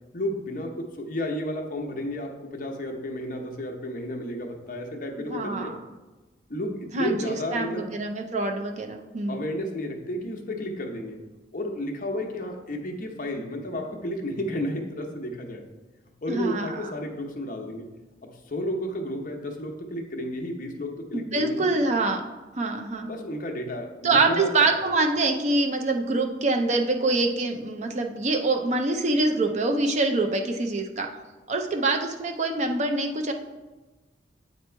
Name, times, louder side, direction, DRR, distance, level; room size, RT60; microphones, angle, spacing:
voice 1, 0.1-5.7 6.5-7.9 9.3-11.2 11.5-15.7 16.2-17.9 18.2-21.8 23.0-24.7, left 1 dB, 50° left, 2 dB, 0.8 m, -32 dB
voice 2, 5.2-5.8 6.9-9.5 16.3-16.8 21.1-22.2 22.6-23.1 24.0-31.1 31.5-33.3, right 2 dB, 40° right, 4 dB, 0.6 m, -25 dB
8.3 x 3.0 x 4.4 m, 1.2 s
head